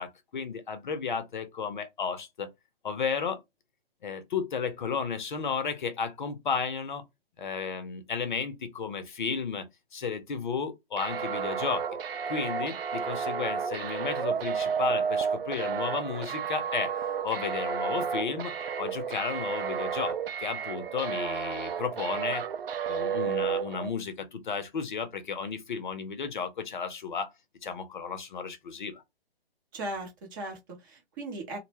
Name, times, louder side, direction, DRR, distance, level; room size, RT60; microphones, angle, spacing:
voice 1, 0.0-2.5 2.8-3.4 4.0-7.0 7.4-9.7 9.9-11.9 12.3-22.4 22.9-27.3 27.6-29.0, left 6 dB, 50° left, 0.6 m, -33 dB
sound 1, 11.0-23.9, right 7 dB, 65° right, 0.5 m, -32 dB
voice 2, 29.7-31.6, right 2 dB, 20° right, 0.6 m, -38 dB
2.0 x 2.0 x 3.2 m
figure-of-eight pair, 130°, 31 cm